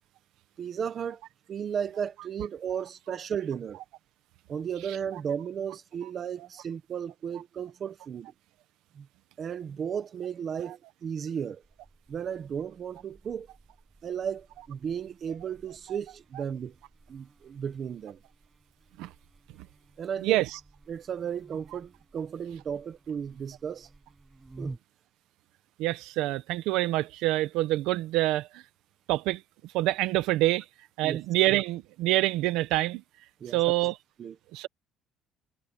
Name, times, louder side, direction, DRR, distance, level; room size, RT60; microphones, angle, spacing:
voice 1, 0.6-1.2 1.5-3.8 4.5-8.3 8.9-9.1 9.4-11.6 12.1-13.5 14.0-16.8 17.1-18.2 20.0-20.4 20.9-23.9 24.6-24.7 31.0-31.2 33.4-33.6 34.2-34.3, right 7 dB, 30° right, 1.2 m, -34 dB
Buzz, 11.6-24.8, right 3 dB, 10° right, 7.6 m, -52 dB
voice 2, 20.2-20.6 25.8-28.6 29.1-29.4 29.7-30.7 31.0-33.0 33.5-33.9 34.5-34.7, right 17 dB, 75° right, 1.3 m, -26 dB
cardioid pair, 175°, 0 cm